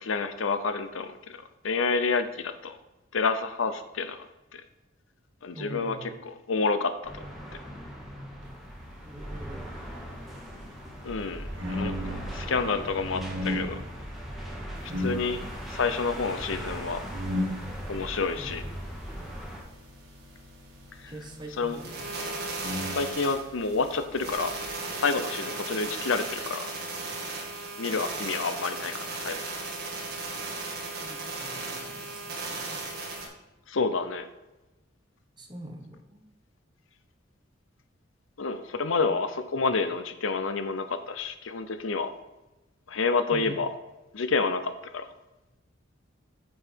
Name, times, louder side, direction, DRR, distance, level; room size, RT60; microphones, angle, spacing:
voice 1, 0.0-1.4 1.6-2.8 3.1-4.3 4.5-4.6 5.4-6.0 6.2-7.1 11.0-13.8 15.0-15.4 15.7-17.0 17.9-18.6 21.0-21.1 21.6-21.8 22.9-24.5 25.0-26.7 27.8-29.6 33.7-34.3 38.4-42.1 42.9-43.7 44.1-45.1, left 4 dB, 80° left, 10 dB, 0.7 m, -29 dB
voice 2, 5.5-6.2 9.0-10.0 14.9-15.4 18.4-18.7 21.0-22.1 31.0-32.8 35.3-36.3 43.3-43.6, right 1 dB, 20° right, 2 dB, 1.1 m, -44 dB
sound 1, 7.0-19.6, equal, ahead, 1.7 m, -39 dB
sound 2, 9.2-24.7, left 1 dB, 80° right, 2.3 m, -38 dB
sound 3, 14.8-14.9 15.2-15.3 15.7-15.8 16.2-16.3 16.7-17.3 17.7-17.8 18.2-18.3 18.7-18.8 19.2-19.3 19.7-19.8 20.3-20.4 20.7-20.8 21.3-21.4 21.6-33.3, right 3 dB, 50° right, 1.8 m, -36 dB
8.6 x 5.6 x 4.5 m, 1.0 s
head